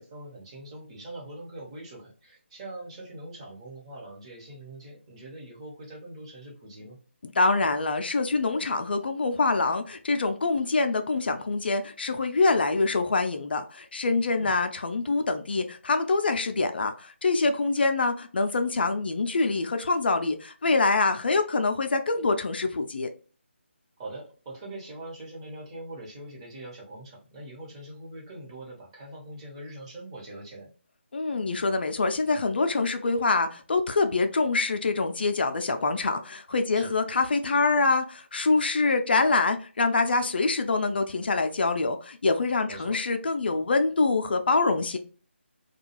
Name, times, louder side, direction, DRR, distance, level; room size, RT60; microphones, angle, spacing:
voice 1, 0.0-7.0 14.3-14.6 24.0-30.7 36.7-36.9 42.7-43.0, right 1 dB, 25° right, 0.9 m, -42 dB
voice 2, 7.2-23.1 31.1-45.0, left 3 dB, 55° left, 0.4 m, -25 dB
2.4 x 2.3 x 2.9 m
figure-of-eight pair, 155°, 7 cm